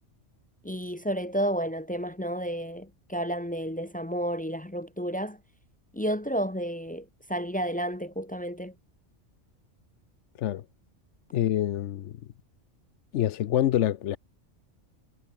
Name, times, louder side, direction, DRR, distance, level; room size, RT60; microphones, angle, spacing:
voice 1, 0.6-5.4 5.9-8.7, equal, 10° left, 0.4 m, -31 dB
voice 2, 11.3-12.2 13.1-14.2, left 12 dB, 70° left, 0.9 m, -26 dB
omnidirectional pair, 1.3 m